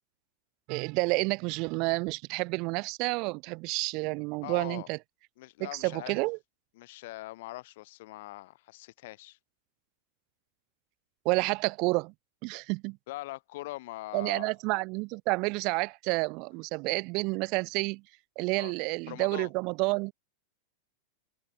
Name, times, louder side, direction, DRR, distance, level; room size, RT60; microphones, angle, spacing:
voice 1, 0.7-5.0 5.6-6.4 11.3-12.1 12.4-13.0 14.1-18.0 18.4-20.1, right 27 dB, 45° right, 3.7 m, -30 dB
voice 2, 4.4-4.9 5.4-6.2 6.8-9.4 13.1-14.5 18.6-18.7 19.1-19.5, left 18 dB, 50° left, 7.6 m, -42 dB
figure-of-eight pair, 90°, 0 cm